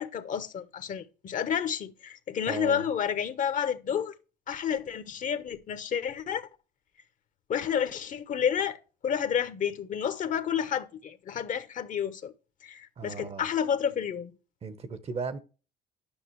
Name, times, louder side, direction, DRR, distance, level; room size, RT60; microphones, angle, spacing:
voice 1, 0.0-4.1 4.5-6.5 7.5-12.3 12.6-14.3, left 8 dB, 50° left, 1.0 m, -30 dB
voice 2, 2.5-2.8 13.0-13.5 14.6-15.4, right 5 dB, 35° right, 0.9 m, -36 dB
10.0 x 6.0 x 3.1 m
cardioid pair, 110°, 17 cm